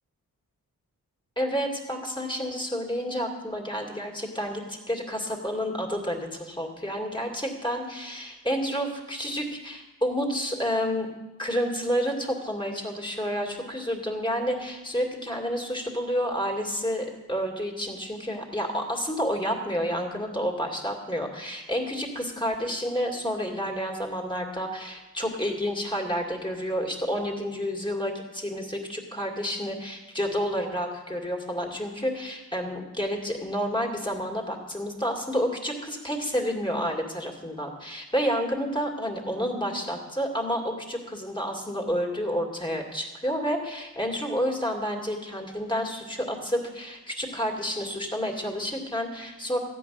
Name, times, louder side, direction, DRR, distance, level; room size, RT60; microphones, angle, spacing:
voice 1, 1.4-11.1 11.4-49.6, equal, 15° left, 1 dB, 2.3 m, -30 dB
14.0 x 5.4 x 9.4 m, 1.1 s
wide cardioid pair, 80°, 35 cm